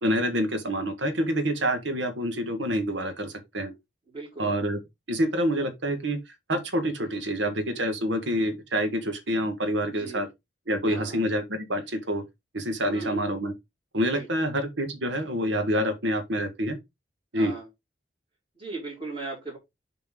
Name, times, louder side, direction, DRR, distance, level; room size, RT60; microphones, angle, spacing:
voice 1, 0.0-3.7 4.4-4.8 5.1-6.2 6.5-10.3 10.7-12.2 12.5-13.5 13.9-16.8 17.3-17.5, equal, 90° right, 1.6 m, -27 dB
voice 2, 4.1-4.5 9.9-10.2 10.9-11.2 12.8-13.3 14.1-14.3 17.3-17.7 18.6-19.6, right 3 dB, 35° right, 3.2 m, -37 dB
7.3 x 4.2 x 3.8 m
head